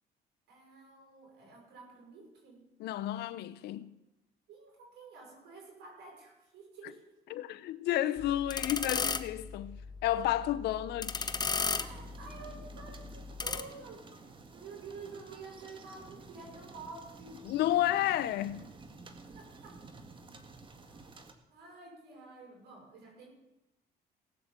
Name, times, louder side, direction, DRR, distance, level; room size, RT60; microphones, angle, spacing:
voice 1, 0.5-2.6 4.5-7.4 11.7-17.4 19.3-19.8 20.8-21.1 21.5-23.3, right 4 dB, 80° right, 6.9 m, -50 dB
voice 2, 2.8-3.9 7.3-9.8 10.0-11.3 17.4-18.6, left 13 dB, 75° left, 0.9 m, -31 dB
sound 1, 8.2-13.6, left 5 dB, 25° left, 0.9 m, -36 dB
sound 2, 11.1-21.3, right 3 dB, 30° right, 1.8 m, -52 dB
18.0 x 7.9 x 7.5 m
cardioid pair, 110°, 17 cm